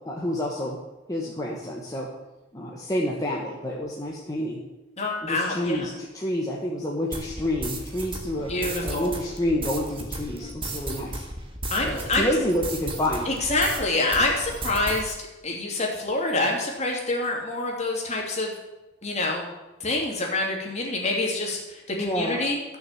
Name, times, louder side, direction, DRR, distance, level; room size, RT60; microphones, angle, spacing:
voice 1, 0.0-0.8 1.1-2.1 2.5-4.6 5.2-8.5 8.8-11.2 11.7-13.3 22.0-22.5, left 1 dB, 20° left, -4 dB, 1.5 m, -28 dB
voice 2, 5.0-5.9 8.5-9.1 11.7-12.3 13.3-15.1 15.4-18.5 19.0-19.5 19.8-22.6, left 2 dB, 35° left, -1 dB, 2.7 m, -26 dB
sound 1, 7.1-13.8 14.1-15.1, right 2 dB, 30° right, 1.7 m, -34 dB
13.0 x 6.7 x 7.4 m, 1.0 s
head